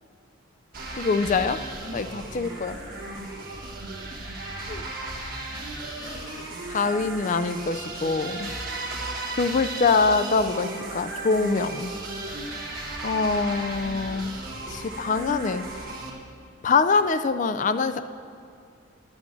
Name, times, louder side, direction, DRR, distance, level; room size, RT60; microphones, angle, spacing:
sound 1, 0.7-16.1, right 2 dB, 45° right, 1.5 m, -35 dB
voice 1, 1.0-1.6 1.9-2.8 4.7-4.8 6.0-6.4 6.7-8.5 9.3-11.9 12.3-12.4 13.0-14.4 14.7-15.7 16.6-18.0, left 4 dB, 35° left, 10 dB, 0.3 m, -24 dB
10.5 x 6.0 x 7.6 m, 2.6 s
head